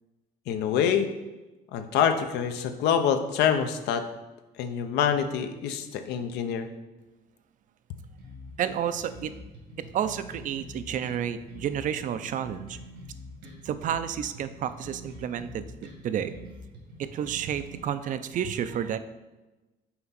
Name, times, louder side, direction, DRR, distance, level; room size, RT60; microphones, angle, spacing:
voice 1, 0.5-1.1 1.7-4.1 4.6-6.7, left 8 dB, 80° left, 8 dB, 0.6 m, -26 dB
sound 1, 8.2-17.8, equal, 85° right, 1.9 m, -45 dB
voice 2, 8.6-9.3 9.8-12.8 13.6-15.6 16.0-16.4 17.0-19.0, right 9 dB, 50° right, 12 dB, 0.4 m, -30 dB
5.8 x 4.3 x 4.0 m, 1.1 s
cardioid pair, 110°, 17 cm